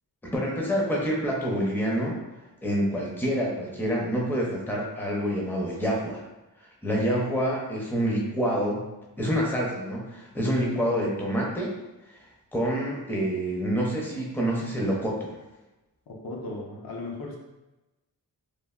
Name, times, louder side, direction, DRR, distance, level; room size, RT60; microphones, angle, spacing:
voice 1, 0.2-2.2 2.6-6.2 6.8-8.9 9.2-11.7 12.5-15.3, equal, 5° left, -3 dB, 0.5 m, -27 dB
voice 2, 16.1-17.4, left 2 dB, 70° left, -2 dB, 0.7 m, -36 dB
3.2 x 2.3 x 2.3 m, 1.0 s
wide cardioid pair, 115°, 37 cm